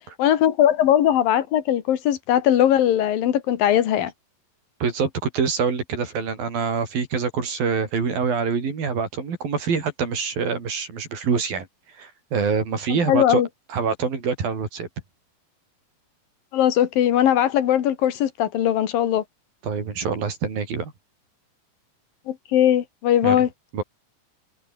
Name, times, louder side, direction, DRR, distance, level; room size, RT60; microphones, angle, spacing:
voice 1, 0.2-4.1 12.9-13.5 16.5-19.2 22.3-23.5, left 11 dB, 80° left, 3.5 m, -20 dB
voice 2, 4.8-11.7 11.9-13.4 13.7-14.9 19.6-20.9 23.2-23.5 23.7-23.8, right 5 dB, 85° right, 6.7 m, -25 dB
omnidirectional pair, 4.0 m